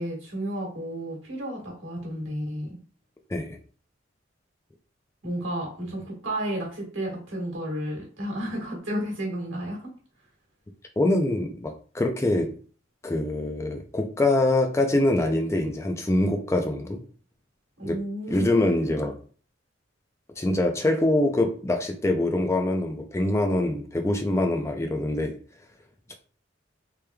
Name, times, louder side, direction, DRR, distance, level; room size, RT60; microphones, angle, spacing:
voice 1, 0.0-2.8 5.2-9.9 17.8-19.1, right 1 dB, 90° right, -1 dB, 1.5 m, -32 dB
voice 2, 11.0-12.6 13.0-17.0 17.8-18.0 18.3-19.1 20.4-25.4 26.1-26.2, left 1 dB, 15° left, 4 dB, 0.3 m, -24 dB
3.3 x 3.1 x 2.2 m, 0.42 s
head